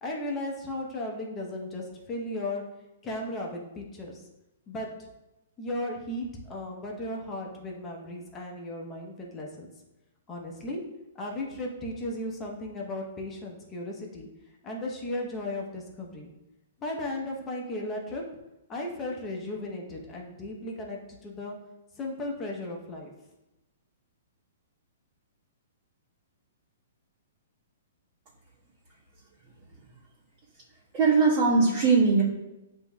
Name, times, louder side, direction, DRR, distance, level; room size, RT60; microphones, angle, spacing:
voice 1, 0.0-2.6 3.0-4.3 4.7-5.1 5.6-9.7 10.3-10.8 11.1-14.3 14.6-16.3 16.8-18.2 18.7-21.6 21.9-23.1, left 1 dB, 20° left, -1 dB, 0.9 m, -35 dB
voice 2, 30.9-32.2, right 4 dB, 30° right, -9 dB, 1.3 m, -20 dB
7.9 x 2.7 x 2.3 m, 0.97 s
hypercardioid pair, 125°, 0 cm